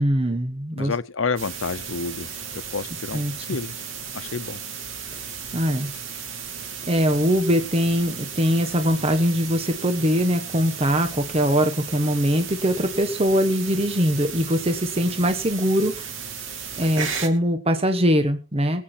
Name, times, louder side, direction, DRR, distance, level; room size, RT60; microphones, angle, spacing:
voice 1, 0.0-0.9 3.1-3.5 5.2-5.3 5.5-5.9 6.9-16.1 16.8-18.8, equal, 30° right, 1.2 m, -22 dB
voice 2, 0.7-3.7 4.1-4.6, left 4 dB, 90° left, 0.8 m, -29 dB
sound 1, 1.4-17.3, right 6 dB, 90° right, 2.7 m, -35 dB
21.5 x 8.5 x 4.4 m
head